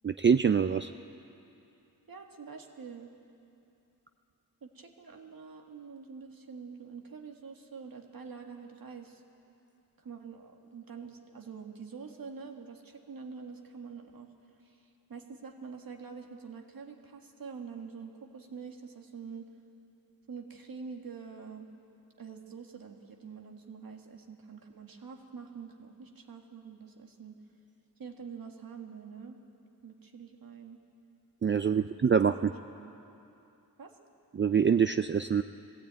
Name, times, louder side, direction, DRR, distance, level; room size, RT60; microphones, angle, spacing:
voice 1, 0.0-0.9 31.4-32.5 34.3-35.4, right 6 dB, 35° right, 9 dB, 0.4 m, -25 dB
voice 2, 2.1-3.1 4.6-9.2 10.0-14.3 14.6-19.5 20.3-21.7 22.2-27.4 28.0-29.4 29.8-30.8 31.7-31.9 32.8-32.9 33.8-33.9, right 5 dB, 70° right, 3 dB, 1.8 m, -46 dB
19.5 x 16.0 x 8.9 m, 2.8 s
wide cardioid pair, 95°, 36 cm